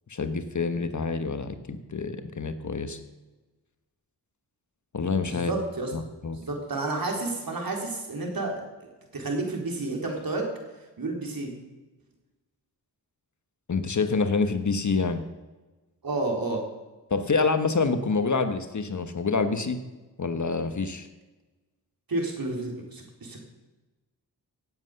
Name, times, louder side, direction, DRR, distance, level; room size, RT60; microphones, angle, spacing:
voice 1, 0.1-3.0 4.9-5.5 5.9-6.4 13.7-15.2 17.1-19.8 20.2-21.1, left 4 dB, 45° left, 9 dB, 1.3 m, -27 dB
voice 2, 5.2-5.9 6.3-8.6 9.1-10.5 11.0-11.5 16.0-16.6 22.1-23.4, right 2 dB, 60° right, 1 dB, 4.0 m, -30 dB
17.0 x 8.0 x 6.7 m, 1.2 s
cardioid pair, 70°, 41 cm